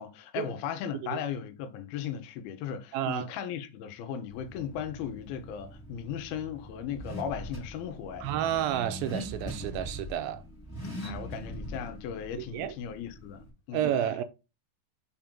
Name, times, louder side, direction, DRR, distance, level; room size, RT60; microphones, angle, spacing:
voice 1, 0.0-8.3 11.0-13.9, left 8 dB, 85° left, 2.7 m, -37 dB
voice 2, 2.9-3.3 8.2-10.4 12.4-12.7 13.7-14.2, right 11 dB, 85° right, 2.4 m, -30 dB
Car / Accelerating revving vroom, 4.3-13.5, equal, 20° left, 0.6 m, -42 dB
5.9 x 4.8 x 3.7 m
omnidirectional pair, 4.3 m